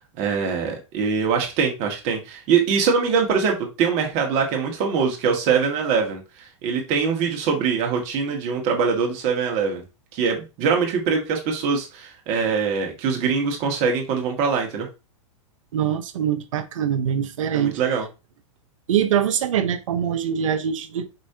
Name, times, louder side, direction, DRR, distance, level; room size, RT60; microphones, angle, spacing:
voice 1, 0.2-9.8 10.1-14.9 17.5-18.0, right 6 dB, 45° right, 1.7 m, -23 dB
voice 2, 15.7-17.8 18.9-21.1, right 9 dB, 80° right, 0.8 m, -23 dB
5.4 x 3.1 x 2.8 m
hypercardioid pair, 130°, 17 cm